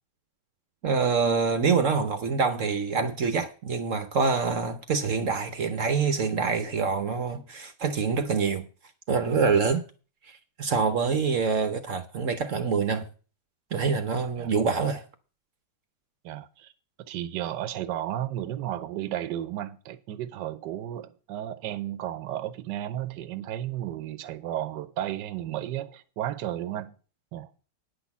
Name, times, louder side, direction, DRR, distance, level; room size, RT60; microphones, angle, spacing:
voice 1, 0.8-8.6 9.1-9.8 10.3-13.1 13.7-15.0, right 5 dB, 55° right, 1.0 m, -26 dB
voice 2, 16.2-16.7 17.1-26.9 27.3-27.5, right 12 dB, 85° right, 1.3 m, -33 dB
9.7 x 6.1 x 7.1 m
omnidirectional pair, 1.8 m